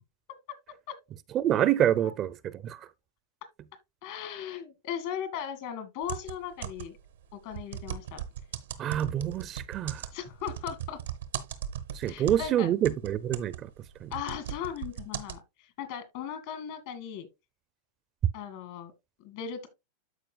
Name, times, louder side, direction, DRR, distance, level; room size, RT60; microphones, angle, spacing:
voice 1, 1.3-2.9 8.8-10.1 11.9-13.7 14.0-14.1, right 11 dB, 35° right, 0.5 m, -27 dB
voice 2, 4.0-7.0 7.3-8.2 10.1-11.0 12.1-12.7 14.1-17.3 18.3-18.9 19.2-19.7, left 9 dB, 60° left, 2.0 m, -38 dB
sound 1, 6.0-7.1 7.5-12.6 12.9-15.4, right 10 dB, 85° right, 1.0 m, -38 dB
13.0 x 4.5 x 2.3 m
hypercardioid pair, 110°, 0 cm